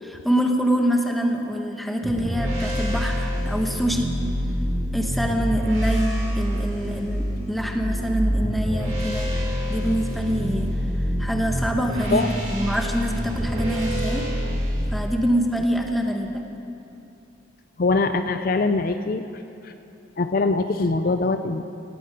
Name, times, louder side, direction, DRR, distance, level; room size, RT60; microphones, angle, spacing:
voice 1, 0.0-4.2 4.9-9.3 9.7-10.7 11.2-14.2 14.9-16.5, equal, ahead, 2 dB, 1.1 m, -25 dB
sound 1, 2.0-14.8, equal, 40° right, 4.5 m, -26 dB
voice 2, 17.8-19.3 19.6-19.7 20.2-21.6, left 3 dB, 45° left, 9 dB, 0.5 m, -22 dB
17.5 x 16.5 x 5.1 m, 2.8 s
head